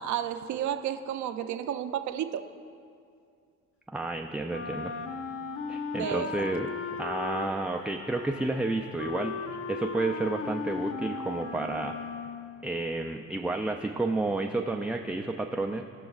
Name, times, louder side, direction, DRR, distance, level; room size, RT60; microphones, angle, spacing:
voice 1, 0.0-2.4 5.9-6.3, right 10 dB, 70° right, 9 dB, 0.6 m, -32 dB
voice 2, 3.9-4.9 5.7-6.7 7.0-12.0 12.6-15.8, right 2 dB, 5° right, 2 dB, 0.3 m, -31 dB
Wind instrument woodwind instrument, 4.5-12.6, left 5 dB, 50° left, 0.6 m, -37 dB
18.5 x 6.2 x 2.4 m, 2.3 s
cardioid pair, 90°, 30 cm